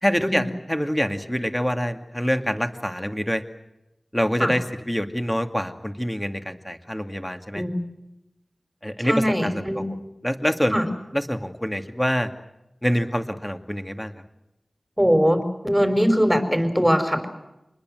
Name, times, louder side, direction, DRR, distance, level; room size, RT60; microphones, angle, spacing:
voice 1, 0.0-3.4 4.1-7.6 8.8-10.0 10.2-10.8 11.1-12.3 12.8-14.1, equal, 10° left, 7 dB, 2.3 m, -26 dB
voice 2, 9.0-9.9 10.7-10.8 15.0-17.3, equal, 5° right, 7 dB, 5.2 m, -21 dB
27.5 x 21.0 x 7.8 m, 0.90 s
wide cardioid pair, 50°, 0 cm